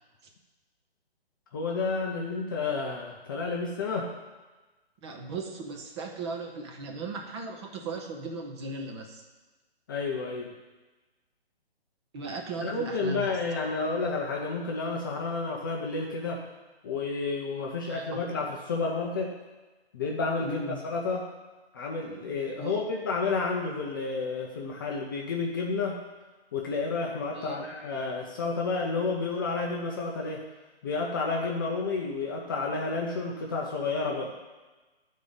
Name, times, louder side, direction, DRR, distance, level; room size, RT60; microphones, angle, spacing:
voice 1, 1.5-4.1 9.9-10.5 12.6-16.4 16.8-19.3 19.9-21.3 21.7-26.0 26.5-30.4 30.8-34.3, left 4 dB, 20° left, -1 dB, 0.5 m, -30 dB
voice 2, 5.0-9.2 12.1-13.4 17.9-18.2 20.4-20.8 22.6-22.9 27.3-27.6, right 3 dB, 25° right, 3 dB, 0.8 m, -37 dB
11.0 x 4.2 x 5.1 m, 1.2 s
figure-of-eight pair, 145°, 32 cm